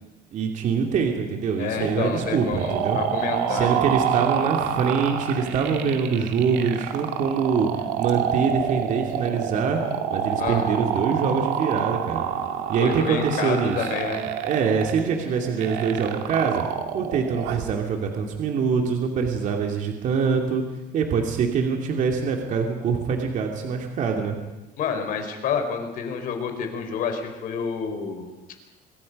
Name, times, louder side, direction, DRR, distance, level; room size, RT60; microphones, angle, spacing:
voice 1, 0.3-3.0 3.5-7.7 8.0-9.8 10.1-12.2 12.7-13.9 14.4-16.6 16.9-20.6 20.9-24.4, right 6 dB, 50° right, 3 dB, 2.6 m, -24 dB
voice 2, 1.6-3.8 10.4-10.8 12.8-14.3 24.8-28.3, left 6 dB, 60° left, 6 dB, 4.2 m, -29 dB
sound 1, 1.8-17.7, right 8 dB, 90° right, 2.3 m, -28 dB
25.5 x 22.5 x 5.4 m, 1.1 s
cardioid pair, 155°, 17 cm